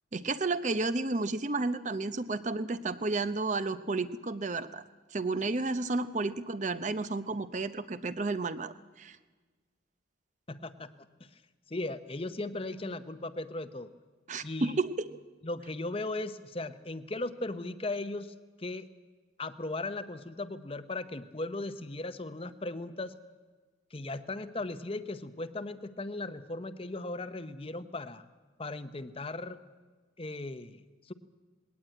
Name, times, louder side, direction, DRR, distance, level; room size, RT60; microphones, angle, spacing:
voice 1, 0.1-4.8 5.1-9.2 14.3-15.1, right 3 dB, 40° right, 12 dB, 0.6 m, -32 dB
voice 2, 10.5-10.9 11.2-11.4 11.7-13.9 14.4-14.8 15.4-18.9 19.4-23.1 23.9-28.2 28.6-29.6 30.2-31.1, left 2 dB, 30° left, 11 dB, 0.8 m, -37 dB
19.5 x 18.0 x 8.9 m, 1.4 s
head